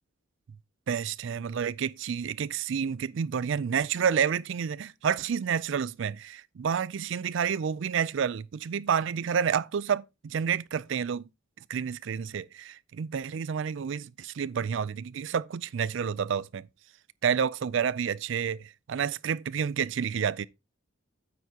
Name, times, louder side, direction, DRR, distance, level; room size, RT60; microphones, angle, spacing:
voice 1, 0.9-11.2 11.7-16.6 17.2-20.5, right 7 dB, 60° right, 0.4 m, -29 dB
9.3 x 8.0 x 2.8 m
head